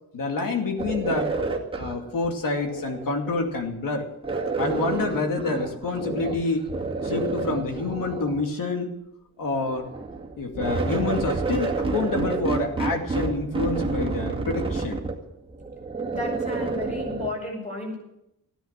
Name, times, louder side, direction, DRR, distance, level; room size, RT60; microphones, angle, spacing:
voice 1, 0.1-1.3 1.8-4.1 4.6-6.7 7.0-9.0 9.4-9.9 10.4-15.0, left 3 dB, 65° left, 4 dB, 2.6 m, -27 dB
sound 1, 0.8-3.6 4.2-6.4 6.7-8.5 9.5-17.3, right 3 dB, 15° right, 2.2 m, -29 dB
voice 2, 16.0-18.0, left 2 dB, 20° left, -2 dB, 7.1 m, -33 dB
15.5 x 10.5 x 7.4 m, 0.83 s
wide cardioid pair, 155°, 36 cm